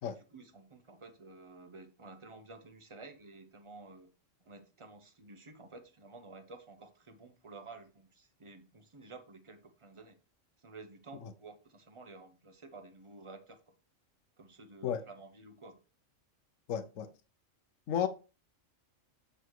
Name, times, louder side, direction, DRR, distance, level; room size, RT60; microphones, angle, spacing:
voice 1, 0.0-4.1 4.4-10.2 10.6-13.7 14.4-15.8, right 3 dB, 25° right, 0.9 m, -52 dB
voice 2, 16.7-17.1 17.9-18.1, left 9 dB, 80° left, 1.1 m, -32 dB
7.9 x 4.1 x 4.7 m
omnidirectional pair, 1.3 m